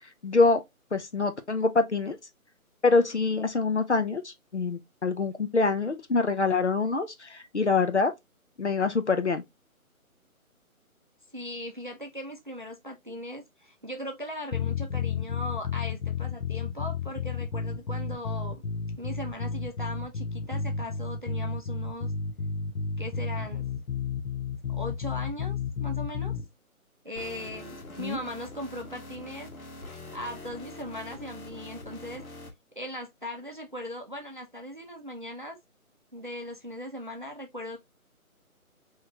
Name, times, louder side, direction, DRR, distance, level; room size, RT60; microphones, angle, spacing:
voice 1, 0.2-0.6 0.9-2.2 2.8-8.1 8.6-9.4 28.0-28.2, left 4 dB, 55° left, 0.5 m, -25 dB
voice 2, 11.3-18.6 19.0-22.1 23.0-23.7 24.7-26.4 27.0-29.5 30.1-32.2 32.7-35.6 36.1-37.8, left 1 dB, 35° right, 0.6 m, -39 dB
sound 1, 14.5-26.5, left 5 dB, 85° left, 0.8 m, -32 dB
sound 2, 27.2-32.5, left 2 dB, 70° left, 1.5 m, -44 dB
3.9 x 3.1 x 2.7 m
hypercardioid pair, 180°, 43 cm